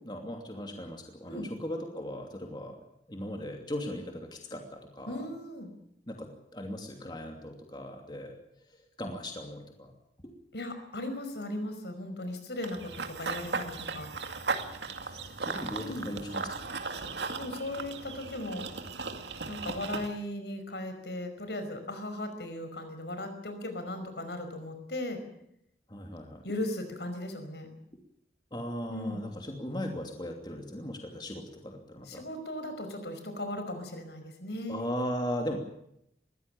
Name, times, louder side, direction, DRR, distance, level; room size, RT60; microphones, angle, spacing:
voice 1, 0.0-2.8 3.1-5.3 6.1-8.3 8.7-9.9 10.2-10.3 15.0-16.5 25.9-26.4 28.5-32.2 34.7-35.6, equal, 25° left, 3 dB, 2.8 m, -38 dB
voice 2, 5.1-5.7 10.5-14.1 15.7-16.1 17.4-18.7 19.5-25.2 26.4-27.7 28.9-29.3 32.1-34.9, left 1 dB, 70° left, 7 dB, 5.2 m, -37 dB
Run / Bird vocalization bird call bird song, 12.6-20.1, right 4 dB, 80° right, 2.3 m, -37 dB
22.5 x 16.0 x 8.7 m, 0.75 s
head